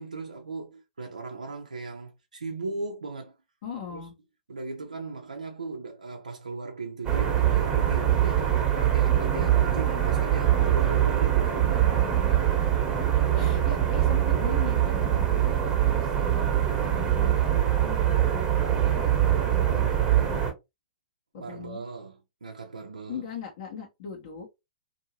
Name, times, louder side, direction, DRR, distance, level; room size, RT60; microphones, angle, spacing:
voice 1, 0.0-3.3 3.9-4.0 4.5-12.1 13.2-13.9 21.4-23.3, right 3 dB, 85° right, 0.5 m, -38 dB
voice 2, 3.6-4.1 8.2-8.7 11.4-12.7 13.3-15.4 15.8-20.4 21.3-21.8 23.1-24.5, left 7 dB, 55° left, 1.0 m, -41 dB
sound 1, 7.0-20.5, right 11 dB, 25° right, 1.0 m, -23 dB
2.7 x 2.6 x 2.7 m
hypercardioid pair, 115°, 4 cm